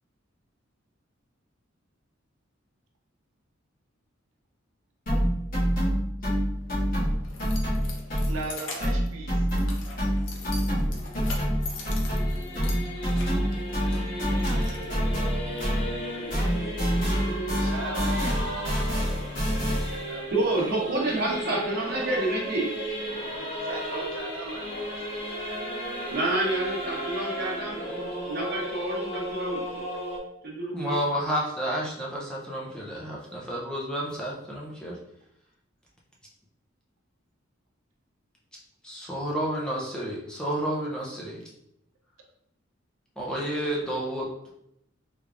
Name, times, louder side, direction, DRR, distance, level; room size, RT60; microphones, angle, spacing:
sound 1, 5.1-8.5 8.8-16.0 16.3-20.1, equal, 45° left, 1.4 m, -27 dB
Keys jangling, 6.6-15.6, left 3 dB, 70° left, 0.6 m, -42 dB
voice 1, 8.3-9.7 17.6-18.7 19.8-20.2 23.6-25.3, right 3 dB, 85° right, 0 dB, 0.6 m, -39 dB
Singing / Musical instrument, 10.8-30.2, equal, 30° left, 0.9 m, -35 dB
voice 2, 20.3-22.7 26.1-27.8 28.3-29.8 30.4-31.0, right 2 dB, 50° right, -3 dB, 1.0 m, -28 dB
voice 3, 30.7-35.0 38.8-41.4 43.2-44.5, equal, 5° left, -4 dB, 0.5 m, -31 dB
3.4 x 3.3 x 2.4 m, 0.77 s
head